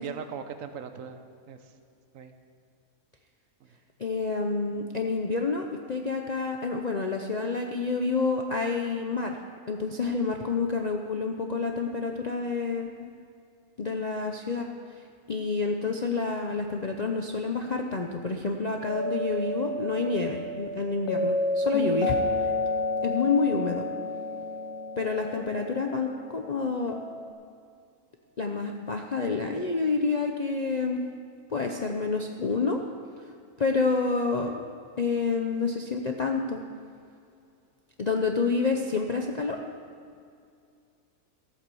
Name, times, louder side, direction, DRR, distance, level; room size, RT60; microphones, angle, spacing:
voice 1, 0.0-1.8 2.1-2.3 3.6-3.8, right 7 dB, 65° right, 8 dB, 1.2 m, -40 dB
voice 2, 4.0-9.4 9.7-13.1 13.8-14.7 15.3-22.5 23.0-23.9 25.0-26.9 28.4-31.0 31.5-32.8 33.6-34.6 35.0-36.6 38.0-39.6, left 4 dB, 40° left, 2 dB, 0.6 m, -28 dB
sound 1, 18.9-27.3, left 2 dB, 80° left, 1.5 m, -31 dB
14.5 x 8.6 x 6.9 m, 2.4 s
omnidirectional pair, 1.6 m